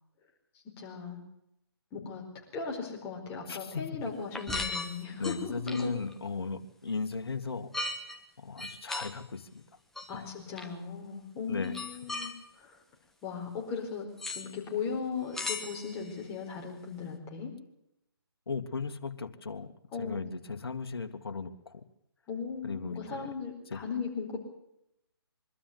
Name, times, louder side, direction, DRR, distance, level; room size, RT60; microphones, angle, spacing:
voice 1, 0.8-1.2 1.9-2.2 2.5-5.9 10.1-12.8 13.2-14.1 14.3-17.5 19.9-20.2 22.3-24.4, left 5 dB, 20° left, -1 dB, 4.6 m, -37 dB
voice 2, 3.5-3.8 5.2-7.7 8.4-9.6 10.1-10.3 11.5-11.7 18.5-19.7 20.0-21.8 22.6-23.3 23.7-23.8, left 4 dB, 70° left, 7 dB, 2.2 m, -36 dB
sound 1, 4.3-6.1 7.7-8.2 8.6-9.1 10.0-10.1 10.6-10.7 11.6-12.3 14.2-14.5 15.3-16.1, left 2 dB, ahead, 1.3 m, -37 dB
24.0 x 13.0 x 9.6 m, 0.80 s
figure-of-eight pair, 150°, 13 cm